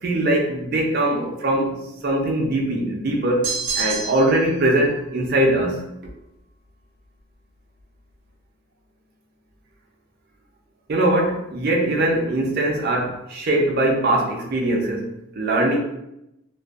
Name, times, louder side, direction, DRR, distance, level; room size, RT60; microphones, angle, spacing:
voice 1, 0.0-3.5 3.8-5.8 10.9-15.8, right 1 dB, 50° right, -1 dB, 0.5 m, -21 dB
sound 1, 3.4-4.4, right 5 dB, 75° right, 0.9 m, -27 dB
2.5 x 2.3 x 2.3 m, 0.86 s
head